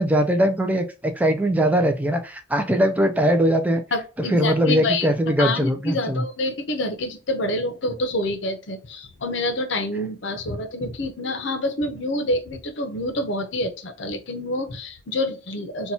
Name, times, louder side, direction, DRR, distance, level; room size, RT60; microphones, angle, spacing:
voice 1, 0.0-3.8 4.3-6.2, equal, 10° right, 6 dB, 0.3 m, -21 dB
voice 2, 3.9-5.1 5.4-15.9, left 1 dB, 65° left, 8 dB, 0.7 m, -27 dB
2.8 x 2.2 x 4.1 m, 0.33 s
head